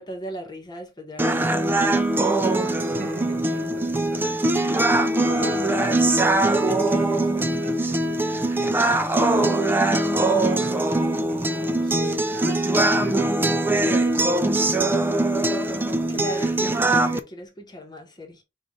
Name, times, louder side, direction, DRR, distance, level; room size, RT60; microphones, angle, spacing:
voice 1, 0.0-2.1 16.1-18.4, equal, 25° left, 1.0 m, -37 dB
sound 1, 1.2-17.2, right 2 dB, 10° right, 0.3 m, -22 dB
voice 2, 3.0-4.9 5.3-10.9 11.3-15.2, right 1 dB, 55° right, 1.6 m, -38 dB
5.2 x 2.4 x 3.4 m
head